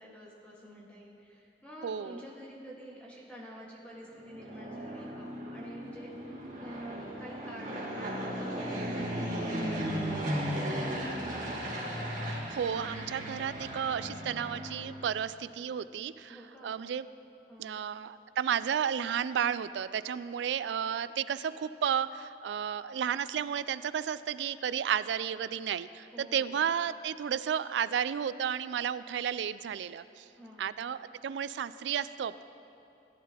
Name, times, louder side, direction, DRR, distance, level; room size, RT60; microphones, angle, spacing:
voice 1, 0.0-9.1 9.4-11.6 16.3-16.8 17.5-17.8 26.1-26.6 30.3-30.7, equal, 5° left, -5 dB, 1.6 m, -49 dB
voice 2, 1.8-2.2 12.2-16.4 16.6-17.1 17.6-30.2 30.6-32.4, right 8 dB, 80° right, 15 dB, 0.3 m, -32 dB
Fixed-wing aircraft airplane, 4.1-15.2, equal, 45° right, 2.2 m, -36 dB
17.5 x 10.0 x 2.9 m, 2.8 s
head